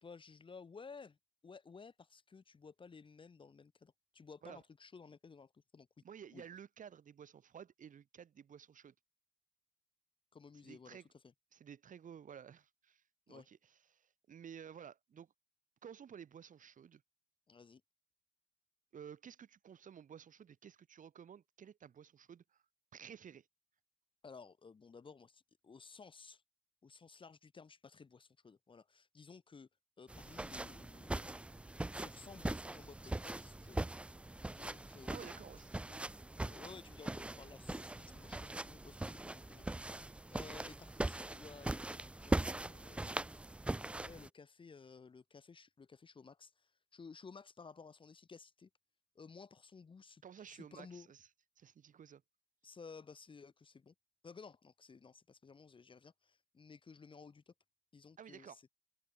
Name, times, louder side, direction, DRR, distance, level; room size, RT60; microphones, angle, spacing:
voice 1, 0.0-1.2 1.4-5.9 6.3-6.4 10.3-11.0 13.3-13.5 17.5-17.8 24.2-26.4 26.8-29.7 30.0-31.4 31.9-35.3 36.2-39.7 40.3-48.7 49.2-51.1 52.6-53.9 54.2-57.5 57.9-58.6, left 5 dB, 25° left, 1.8 m, -56 dB
voice 2, 6.0-8.9 10.6-11.1 11.5-13.6 13.9-15.3 15.8-17.0 18.9-22.6 22.9-23.5 35.1-36.0 50.2-51.3 51.6-52.2 58.2-58.6, right 8 dB, 45° right, 2.3 m, -54 dB
sound 1, 30.1-44.3, right 2 dB, 5° right, 0.3 m, -41 dB
open air
cardioid pair, 130°, 19 cm